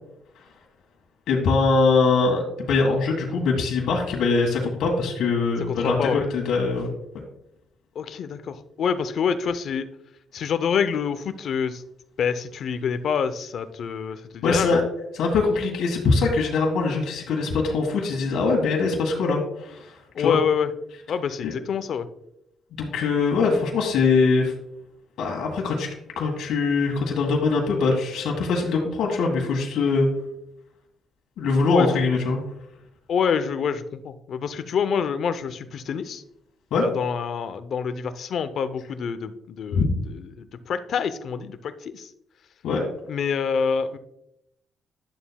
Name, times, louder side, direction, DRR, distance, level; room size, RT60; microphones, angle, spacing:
voice 1, 1.3-6.9 14.4-14.8 15.2-19.4 19.7-19.8 20.2-20.4 21.4-21.5 22.7-24.5 25.2-25.9 26.2-30.1 31.4-32.4 36.7-36.9 39.7-39.9 42.6-42.9, left 4 dB, 80° left, 0 dB, 1.6 m, -22 dB
voice 2, 5.7-6.3 8.0-9.9 10.3-11.8 12.2-14.8 20.1-20.7 21.1-22.1 31.7-31.9 33.1-36.2 36.7-42.1 43.1-44.0, left 6 dB, 65° left, 12 dB, 0.6 m, -26 dB
11.0 x 7.0 x 2.3 m, 0.80 s
cardioid pair, 90°, 0 cm